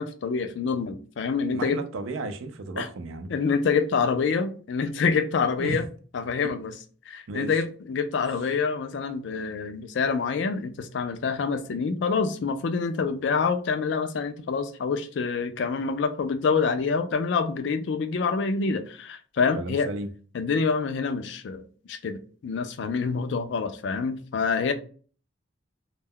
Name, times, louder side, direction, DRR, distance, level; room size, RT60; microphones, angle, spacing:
voice 1, 0.0-1.8 2.8-2.9 3.3-5.9 6.1-6.7 7.1-19.9 20.3-24.7, left 5 dB, 60° left, 0.3 m, -26 dB
voice 2, 1.5-3.3 5.6-5.8 7.3-7.5 19.5-20.1, right 3 dB, 80° right, 0.4 m, -33 dB
2.2 x 2.1 x 3.5 m
head